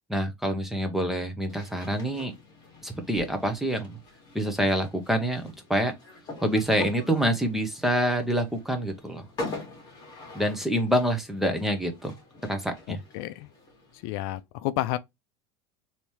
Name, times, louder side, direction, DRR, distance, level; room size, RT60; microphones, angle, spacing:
voice 1, 0.1-2.3 2.8-4.0 4.3-5.9 6.4-9.2 10.3-12.1 12.5-13.0, equal, ahead, 0.6 m, -26 dB
sound 1, 1.5-14.4, left 2 dB, 30° left, 1.6 m, -43 dB
voice 2, 12.9-13.5 14.0-15.0, left 15 dB, 65° left, 0.4 m, -31 dB
3.3 x 2.7 x 3.0 m
cardioid pair, 160°, 13 cm